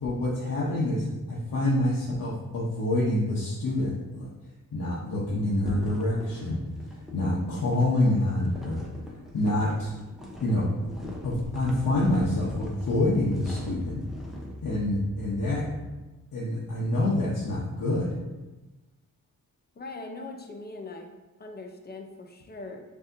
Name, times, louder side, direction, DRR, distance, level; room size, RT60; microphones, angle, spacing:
voice 1, 0.0-4.3 4.7-6.6 7.1-8.8 9.3-9.9 10.4-10.7 11.2-14.0 14.6-15.7 16.3-18.1, left 1 dB, 65° left, -7 dB, 1.0 m, -26 dB
sound 1, 5.6-14.6, equal, ahead, 0.8 m, -41 dB
sound 2, 11.1-16.2 16.8-16.9, left 1 dB, 90° left, 0.8 m, -43 dB
voice 2, 19.8-21.1 21.4-22.8, left 3 dB, 30° left, 3 dB, 0.6 m, -41 dB
6.7 x 2.8 x 2.6 m, 1.1 s
cardioid pair, 100°, 34 cm